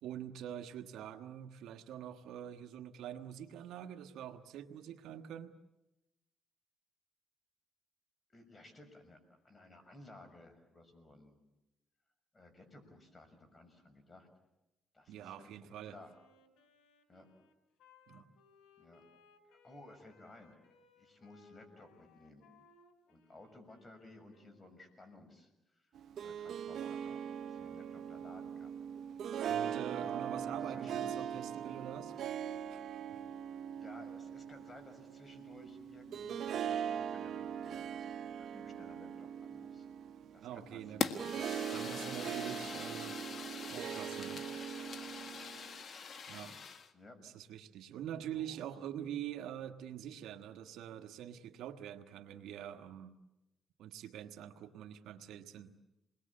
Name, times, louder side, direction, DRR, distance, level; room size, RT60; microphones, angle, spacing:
voice 1, 0.0-5.5 15.1-16.0 18.1-18.3 29.5-32.1 32.7-32.8 40.4-43.1 43.7-44.4 46.3-46.6 47.2-53.1 53.8-55.7, right 10 dB, 85° right, 8 dB, 1.5 m, -45 dB
voice 2, 8.3-9.2 9.4-11.4 12.3-14.3 14.9-16.1 17.1-17.3 18.8-19.0 19.5-20.6 21.0-22.5 23.1-25.9 26.2-28.8 30.5-31.4 33.8-39.9 40.3-41.1 46.9-47.2 48.3-48.6, left 2 dB, 25° left, 6 dB, 6.5 m, -57 dB
Wind instrument woodwind instrument, 16.0-25.0, left 3 dB, 85° left, 3.6 m, -66 dB
Harp, 25.9-45.8, right 9 dB, 70° right, 1.0 m, -41 dB
Fire, 41.0-46.9, left 6 dB, 50° left, 1.7 m, -42 dB
28.5 x 21.0 x 8.6 m, 0.94 s
cardioid pair, 90°, 0 cm